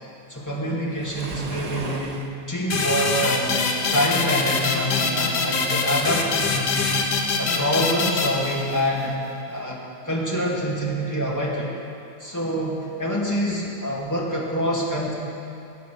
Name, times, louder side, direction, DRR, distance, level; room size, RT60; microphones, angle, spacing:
voice 1, 0.3-2.2 2.5-7.1 7.4-9.2 9.5-11.7 12.2-15.1, equal, 10° left, -4 dB, 2.3 m, -26 dB
Waves surf, 0.9-2.4, right 3 dB, 70° right, 0.3 m, -35 dB
sound 1, 2.7-9.1, left 4 dB, 75° left, 1.8 m, -24 dB
19.5 x 8.1 x 6.4 m, 2.6 s
omnidirectional pair, 1.8 m